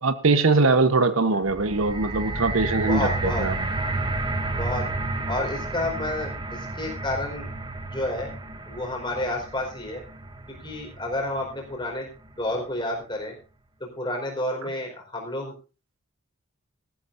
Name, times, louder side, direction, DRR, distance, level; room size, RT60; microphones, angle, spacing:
voice 1, 0.0-3.6, right 3 dB, 70° right, 11 dB, 1.1 m, -22 dB
sound 1, 1.4-11.7 12.4-12.5, right 2 dB, 20° right, 0.9 m, -31 dB
voice 2, 2.9-3.5 4.5-4.9 5.3-7.5 7.9-8.3 8.7-10.0 10.5-12.1 12.4-13.4 13.8-15.5, left 1 dB, 20° left, 1 dB, 4.6 m, -30 dB
19.0 x 14.0 x 2.6 m, 0.33 s
head